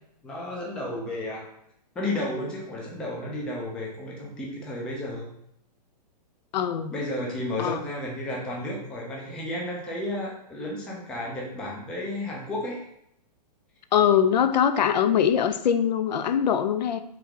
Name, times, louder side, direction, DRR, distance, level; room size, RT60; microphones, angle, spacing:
voice 1, 0.2-1.5 2.0-5.3 6.9-12.8, left 1 dB, 5° left, -3 dB, 0.3 m, -32 dB
voice 2, 6.5-6.9 7.6-7.8 13.9-17.0, left 8 dB, 85° left, 11 dB, 0.5 m, -22 dB
3.3 x 3.0 x 3.6 m, 0.76 s
hypercardioid pair, 160°, 21 cm